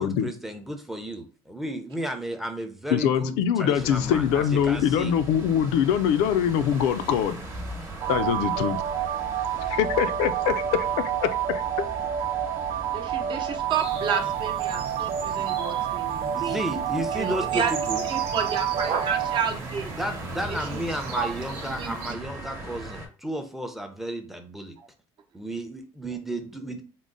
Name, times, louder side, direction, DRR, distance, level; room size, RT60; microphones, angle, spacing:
voice 1, 0.0-5.2 16.3-18.0 19.9-24.8 25.3-26.8, right 1 dB, ahead, 0.5 m, -33 dB
voice 2, 2.9-7.4 8.1-8.8 9.7-11.9, left 9 dB, 85° left, 0.4 m, -24 dB
sound 1, 3.7-23.1, right 1 dB, 25° right, 1.0 m, -40 dB
sound 2, 8.0-19.4, right 10 dB, 60° right, 0.4 m, -29 dB
voice 3, 12.9-16.6 17.1-17.7 18.1-19.9 20.7-20.8 21.2-21.3 21.8-21.9, right 6 dB, 45° right, 0.7 m, -30 dB
sound 3, 13.7-22.1, right 5 dB, 85° right, 0.7 m, -38 dB
3.7 x 2.0 x 3.8 m
cardioid pair, 120°, 11 cm